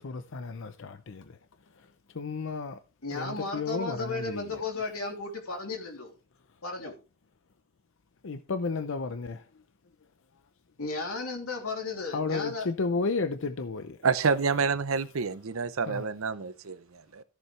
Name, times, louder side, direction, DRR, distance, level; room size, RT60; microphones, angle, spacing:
voice 1, 0.0-1.4 1.7-2.8 3.1-4.6 8.2-9.6 12.1-14.0 15.9-16.0, left 4 dB, 60° left, 0.6 m, -33 dB
voice 2, 3.0-6.1 6.6-6.9 10.8-12.7, left 3 dB, 90° left, 3.0 m, -34 dB
voice 3, 14.0-17.2, right 5 dB, 70° right, 0.8 m, -28 dB
14.0 x 7.3 x 3.2 m
head